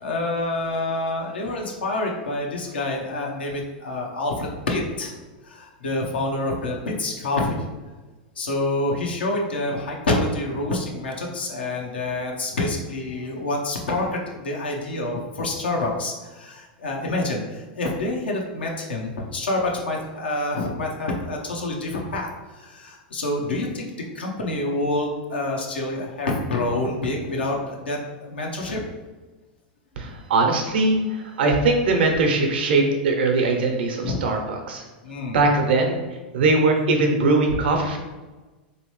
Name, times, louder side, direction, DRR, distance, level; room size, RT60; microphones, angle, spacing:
voice 1, 0.0-5.1 5.4-7.6 8.4-23.8 24.1-28.8 34.0-34.2 35.0-35.4, left 2 dB, 90° left, 0 dB, 0.7 m, -27 dB
voice 2, 30.0-34.8 35.3-36.0 36.3-38.0, right 3 dB, 75° right, 2 dB, 0.7 m, -21 dB
3.1 x 2.9 x 3.1 m, 1.2 s
hypercardioid pair, 105°, 5 cm